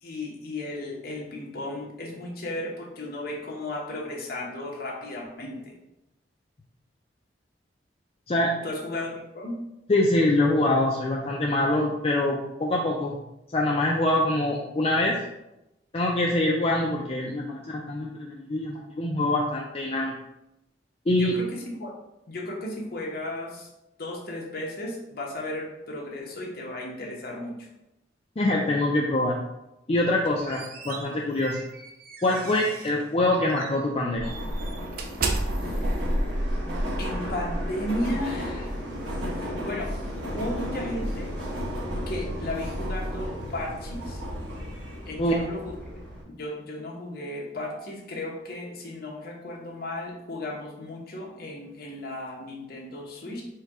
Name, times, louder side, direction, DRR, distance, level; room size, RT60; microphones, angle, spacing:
voice 1, 0.0-5.7 8.6-9.6 21.1-21.9 22.3-23.7 24.0-27.7 35.6-35.8 37.0-38.8 39.3-39.9 40.3-41.4 42.1-44.2 45.1-46.0 46.3-53.4, left 1 dB, 55° left, -2 dB, 1.0 m, -34 dB
voice 2, 9.9-13.2 13.5-15.2 15.9-20.1 21.1-21.3 28.4-29.4 29.9-31.6 32.2-34.4 45.2-45.3, left 1 dB, 30° left, -2 dB, 0.4 m, -24 dB
sound 1, 30.1-33.0 33.5-33.7 34.2-38.4, right 1 dB, 50° right, 0.5 m, -31 dB
Subway metro underground, 34.2-46.2, equal, 65° right, 1.2 m, -33 dB
4.5 x 2.3 x 4.7 m, 0.90 s
head